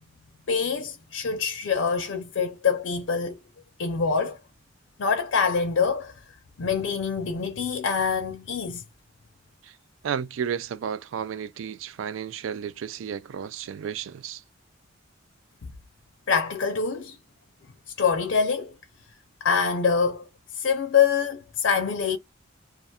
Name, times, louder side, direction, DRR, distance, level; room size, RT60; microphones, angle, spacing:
voice 1, 0.5-3.4 3.8-4.4 5.0-6.1 6.6-8.8 15.6-15.7 16.3-17.2 18.0-18.7 19.4-20.3 20.5-22.2, left 6 dB, 70° left, 0.5 m, -25 dB
voice 2, 10.0-14.4, right 8 dB, 75° right, 0.3 m, -32 dB
2.4 x 2.2 x 2.7 m
head